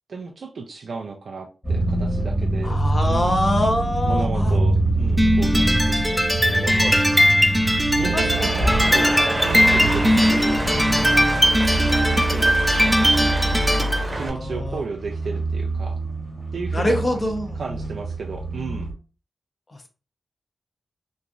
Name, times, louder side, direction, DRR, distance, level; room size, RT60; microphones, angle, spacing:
voice 1, 0.1-2.8 3.0-3.4 4.0-7.0 7.9-9.1 9.4-10.6 11.8-13.0 13.8-16.0 16.5-17.3 17.6-18.9, right 4 dB, 75° right, 0 dB, 0.4 m, -34 dB
sound 1, 1.6-18.9, right 2 dB, 25° left, 1.3 m, -25 dB
voice 2, 2.6-4.6 6.5-7.0 8.1-8.6 9.0-9.2 11.1-11.3 13.7-14.8 16.7-17.6 19.7-19.9, left 1 dB, 40° left, 3 dB, 0.8 m, -26 dB
sound 2, 5.2-14.0, equal, 5° right, 0.4 m, -19 dB
Cheering / Applause, 8.0-14.3, right 1 dB, 40° right, 0.9 m, -28 dB
3.0 x 2.5 x 2.4 m, 0.35 s
cardioid pair, 55°, 0 cm